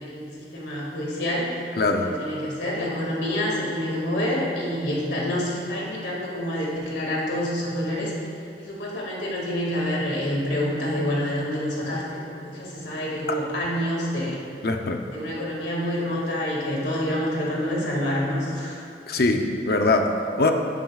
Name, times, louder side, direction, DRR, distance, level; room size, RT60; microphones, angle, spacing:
voice 1, 0.0-1.6 1.9-8.1 8.6-14.4 15.1-18.8, left 1 dB, 85° left, -4 dB, 2.2 m, -27 dB
voice 2, 1.8-2.1 14.6-15.0 19.1-20.5, left 2 dB, 60° left, 4 dB, 0.7 m, -22 dB
12.0 x 9.3 x 2.4 m, 2.5 s
head